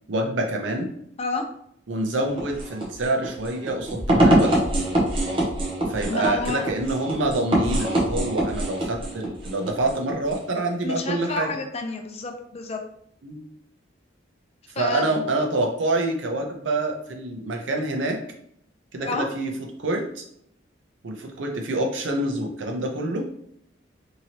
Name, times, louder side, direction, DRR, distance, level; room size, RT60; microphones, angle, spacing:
voice 1, 0.1-0.9 1.9-4.6 5.9-11.5 13.2-13.4 14.7-18.2 18.9-19.5 19.8-20.2 21.0-23.2, right 2 dB, 90° right, 2 dB, 0.6 m, -26 dB
sound 1, 2.3-10.5, right 1 dB, 30° right, 0.7 m, -24 dB
voice 2, 6.1-6.6 10.8-12.8 14.8-15.2 19.0-19.3, left 3 dB, 35° left, 4 dB, 0.4 m, -29 dB
2.8 x 2.8 x 2.8 m, 0.71 s
head